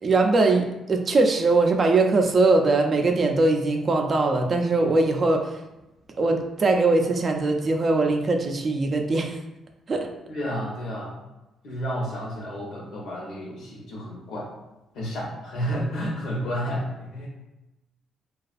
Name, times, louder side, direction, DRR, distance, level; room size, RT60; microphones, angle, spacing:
voice 1, 0.0-5.6 6.2-9.4 9.9-10.1, right 3 dB, 40° right, 3 dB, 0.3 m, -21 dB
voice 2, 10.3-11.2 11.6-14.5 14.9-17.3, equal, 80° left, -4 dB, 0.8 m, -31 dB
2.4 x 2.3 x 2.4 m, 0.98 s
cardioid pair, 90°, 0 cm